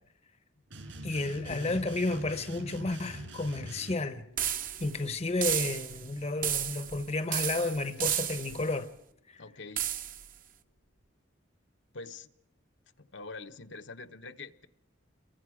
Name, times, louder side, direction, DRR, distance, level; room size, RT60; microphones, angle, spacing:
sound 1, 0.7-3.9, right 2 dB, 75° right, 6.0 m, -44 dB
voice 1, 1.0-4.5 4.8-8.9 9.3-9.4, left 2 dB, 35° left, 0.9 m, -32 dB
Bass guitar, 1.5-9.6, left 1 dB, 85° left, 2.7 m, -54 dB
sound 2, 4.4-5.0 5.4-6.0 6.4-7.0 7.3-8.6 9.8-10.3, right 10 dB, 45° right, 0.9 m, -32 dB
voice 2, 9.4-9.9 11.9-12.3 13.0-14.7, left 3 dB, 65° left, 1.0 m, -44 dB
28.5 x 23.0 x 4.9 m
head